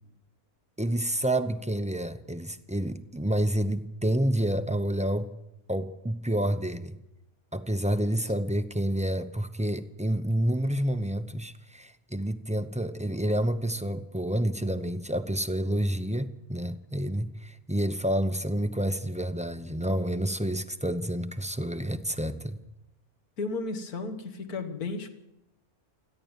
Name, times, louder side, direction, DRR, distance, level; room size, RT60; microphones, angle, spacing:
voice 1, 0.8-5.3 5.7-7.0 7.5-22.6, right 1 dB, 10° right, 0.5 m, -29 dB
voice 2, 23.4-25.1, left 3 dB, 85° left, 2.1 m, -33 dB
27.5 x 11.0 x 9.0 m
omnidirectional pair, 1.5 m